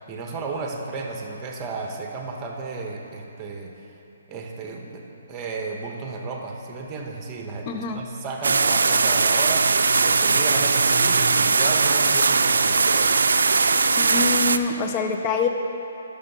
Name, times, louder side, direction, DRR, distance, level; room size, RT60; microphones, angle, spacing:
voice 1, 0.0-3.7 4.3-13.2, right 3 dB, 20° right, 1 dB, 1.0 m, -33 dB
voice 2, 7.7-8.0 14.0-15.5, left 5 dB, 30° left, 4 dB, 0.6 m, -25 dB
sound 1, 8.4-14.6, right 4 dB, 85° right, 0.4 m, -19 dB
10.0 x 6.9 x 5.5 m, 2.8 s
hypercardioid pair, 155°, 0 cm